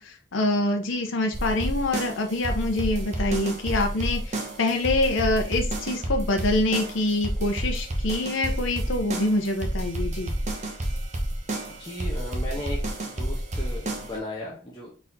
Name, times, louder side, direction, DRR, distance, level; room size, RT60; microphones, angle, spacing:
voice 1, 0.0-10.3, left 2 dB, 85° left, 4 dB, 0.7 m, -25 dB
sound 1, 1.3-14.2, right 1 dB, 35° right, 0.8 m, -30 dB
voice 2, 11.8-12.8 13.0-14.9, left 1 dB, 25° left, -4 dB, 0.9 m, -36 dB
4.1 x 3.9 x 2.7 m, 0.34 s
head